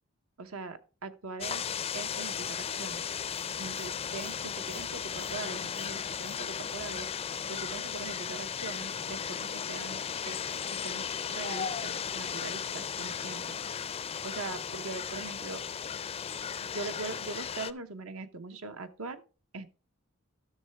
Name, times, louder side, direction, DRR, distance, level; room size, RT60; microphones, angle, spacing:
voice 1, 0.4-1.7 1.9-3.1 3.6-7.1 7.5-10.4 10.7-13.6 14.2-15.6 16.6-19.2 19.5-19.7, right 3 dB, 75° right, 9 dB, 0.9 m, -41 dB
sound 1, 1.4-17.7, left 7 dB, 30° left, 0.4 m, -36 dB
11.5 x 6.6 x 3.4 m, 0.35 s
head